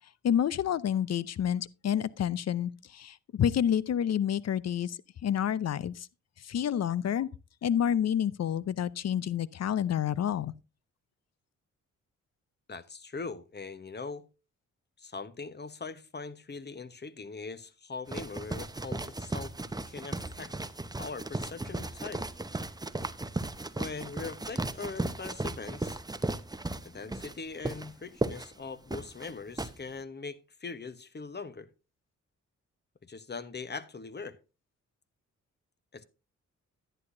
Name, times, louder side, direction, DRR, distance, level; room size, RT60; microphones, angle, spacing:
voice 1, 0.2-6.1 6.4-7.3 7.6-10.5, left 9 dB, 55° left, 0.6 m, -29 dB
voice 2, 12.7-14.2 15.0-19.5 19.9-20.5 21.0-22.3 23.8-26.0 26.8-31.7 33.0-34.4 35.9-36.0, left 4 dB, 35° left, 1.1 m, -41 dB
sound 1, 18.1-29.7, right 2 dB, 10° right, 0.8 m, -36 dB
11.0 x 9.9 x 2.7 m
supercardioid pair, 55°, 32 cm